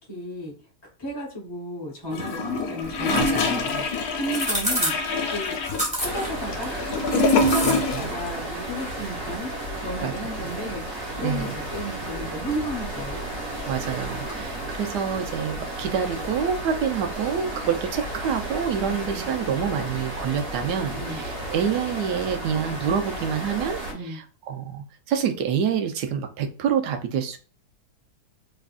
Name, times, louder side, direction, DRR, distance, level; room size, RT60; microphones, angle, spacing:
voice 1, 0.1-0.5 1.0-4.9 5.3-5.5 6.0-9.5 9.8-13.2 18.8-19.3 20.9-21.2 23.9-24.2, equal, 20° left, -3 dB, 0.8 m, -33 dB
Gurgling / Toilet flush, 2.1-8.2 8.5-8.6, left 3 dB, 70° left, 1.2 m, -25 dB
sound 1, 2.8-14.5, equal, 5° right, 1.3 m, -35 dB
voice 2, 3.1-3.7 7.4-8.0 10.0-10.1 11.2-11.5 13.7-27.4, right 7 dB, 85° right, 6 dB, 1.2 m, -27 dB
sound 2, 6.0-23.9, right 1 dB, 55° right, 1.4 m, -33 dB
3.6 x 3.3 x 2.4 m, 0.37 s
omnidirectional pair, 1.8 m